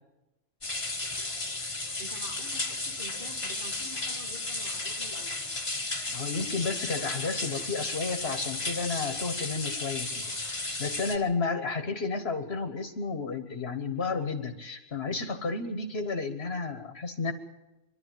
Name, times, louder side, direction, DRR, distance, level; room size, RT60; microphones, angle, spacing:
sound 1, 0.6-11.2, left 2 dB, 25° left, 1.6 m, -34 dB
voice 1, 2.0-5.4, right 1 dB, 45° right, 2 dB, 3.1 m, -47 dB
voice 2, 6.1-10.2 10.8-17.3, left 4 dB, 60° left, 8 dB, 1.6 m, -32 dB
25.0 x 12.0 x 9.3 m, 1.0 s
omnidirectional pair, 1.2 m